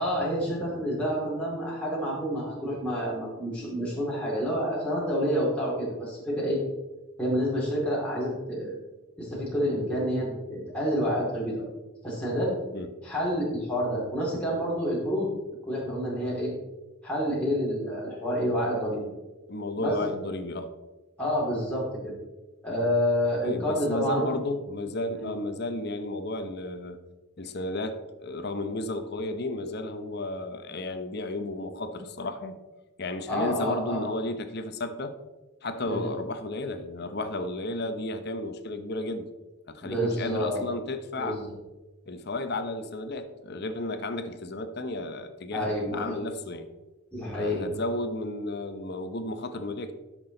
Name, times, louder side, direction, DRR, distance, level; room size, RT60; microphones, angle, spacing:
voice 1, 0.0-6.6 7.2-8.8 9.2-11.7 12.0-12.5 13.0-15.3 15.7-16.5 17.0-19.0 19.8-20.1 21.2-22.1 22.6-24.3 25.1-25.3 33.3-34.0 35.8-36.1 39.8-40.6 41.2-41.4 45.5-46.2 47.1-47.7, equal, 5° left, -7 dB, 2.5 m, -28 dB
voice 2, 19.5-20.7 23.4-27.0 27.4-32.6 33.0-35.2 35.6-39.3 39.7-41.4 42.1-46.7 47.2-49.9, left 2 dB, 50° left, 9 dB, 0.8 m, -33 dB
12.0 x 6.2 x 3.8 m, 1.1 s
head